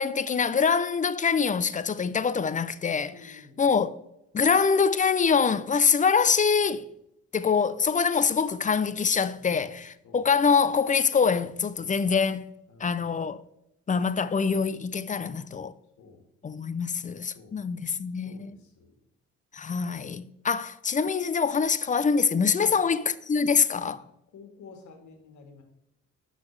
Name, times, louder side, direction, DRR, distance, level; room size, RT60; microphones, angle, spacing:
voice 1, 0.0-4.0 4.3-6.9 7.3-12.5 12.8-13.4 13.9-15.7 16.4-18.6 19.5-24.0, left 5 dB, 25° left, 0.4 m, -25 dB
voice 2, 3.1-3.6 9.4-9.7 10.0-10.3 12.7-13.1 15.1-15.4 16.0-16.2 17.4-17.6 18.3-18.4 18.8-18.9 22.6-22.8 24.3-25.6, left 5 dB, 70° left, 1.8 m, -49 dB
11.5 x 4.0 x 3.2 m
cardioid pair, 90°, 30 cm